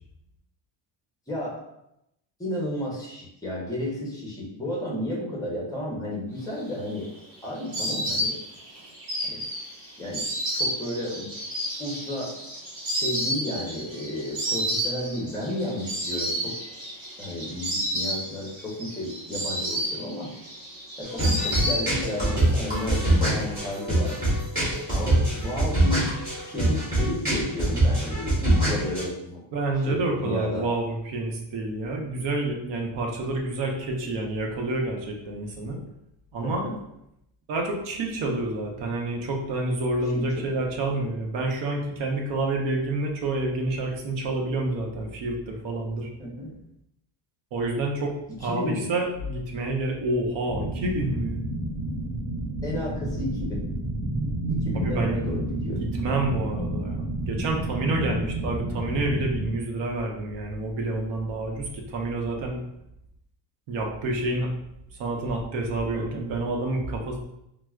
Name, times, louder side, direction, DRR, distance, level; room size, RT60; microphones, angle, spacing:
voice 1, 1.3-1.6 2.4-7.1 7.4-8.4 9.3-9.4 10.0-10.2 10.5-11.3 11.8-12.4 12.9-16.6 17.2-20.3 21.0-24.2 24.9-26.1 26.5-29.4 29.9-30.7 36.4-36.8 40.1-40.6 46.2-46.5 48.4-48.9 52.6-53.6 54.5-55.8 65.9-66.2, left 1 dB, 10° left, -4 dB, 0.5 m, -32 dB
Insect, 6.6-22.3 22.5-23.4, equal, 50° right, 1.3 m, -31 dB
sound 1, 21.0-29.0, right 1 dB, 20° right, 1.3 m, -24 dB
voice 2, 29.5-35.8 36.3-36.7 37.5-46.1 47.5-51.4 54.7-55.2 55.8-62.6 63.7-64.5 65.0-67.2, right 2 dB, 70° right, 1 dB, 0.8 m, -28 dB
sound 2, 50.5-59.5, right 1 dB, 35° right, 0.7 m, -30 dB
4.5 x 2.0 x 2.3 m, 0.82 s
cardioid pair, 170°, 46 cm